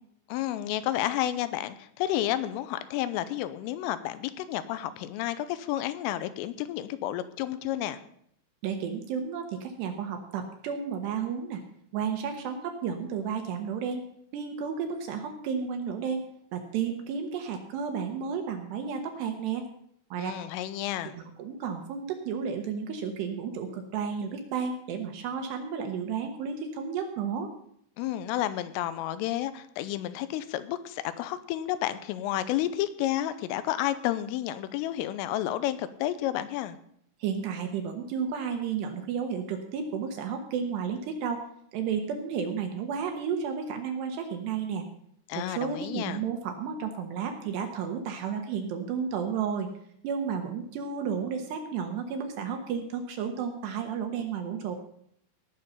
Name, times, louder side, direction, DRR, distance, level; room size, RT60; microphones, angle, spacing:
voice 1, 0.3-8.0 20.2-21.2 28.0-36.8 45.3-46.2, left 13 dB, 85° left, 13 dB, 3.3 m, -31 dB
voice 2, 8.6-11.6 11.9-14.0 14.3-16.3 16.5-19.7 20.1-20.3 21.0-27.5 37.2-41.5 41.7-44.9 45.4-49.7 50.0-54.8, right 6 dB, 70° right, 5 dB, 2.9 m, -32 dB
18.0 x 6.7 x 5.6 m, 0.68 s
omnidirectional pair, 5.8 m